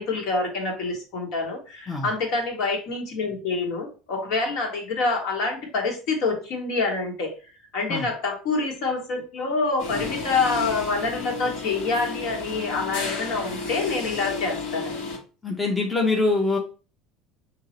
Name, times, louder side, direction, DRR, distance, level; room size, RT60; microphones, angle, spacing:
voice 1, 0.0-7.3 7.7-15.0, left 3 dB, 60° left, 1 dB, 1.5 m, -26 dB
sound 1, 9.8-15.2, left 4 dB, 75° left, 1.7 m, -32 dB
voice 2, 15.4-16.6, left 3 dB, 10° left, 0 dB, 0.7 m, -23 dB
5.3 x 2.8 x 3.0 m, 0.35 s
cardioid pair, 150°, 0 cm